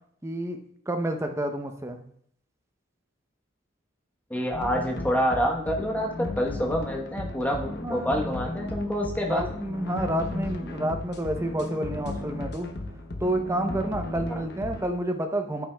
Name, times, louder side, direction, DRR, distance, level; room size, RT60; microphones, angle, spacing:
voice 1, 0.2-0.6 0.9-2.0 7.8-8.1 9.3-12.7 13.2-15.7, right 1 dB, 15° right, 5 dB, 0.6 m, -29 dB
voice 2, 4.3-9.4 14.3-14.4, equal, 10° left, -1 dB, 1.0 m, -27 dB
sound 1, 4.5-14.9, left 2 dB, 55° left, 0.8 m, -35 dB
9.1 x 8.6 x 2.2 m, 0.66 s
head